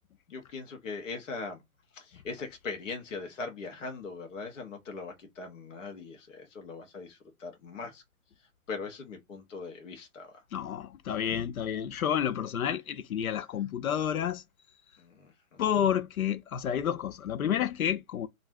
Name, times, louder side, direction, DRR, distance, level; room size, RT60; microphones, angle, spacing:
voice 1, 0.3-1.6 1.9-8.0 8.7-10.4 15.0-15.8, left 4 dB, 60° left, 0.9 m, -40 dB
voice 2, 10.5-14.4 15.6-18.3, left 9 dB, 75° left, 0.5 m, -30 dB
2.4 x 2.0 x 3.4 m
hypercardioid pair, 150°, 43 cm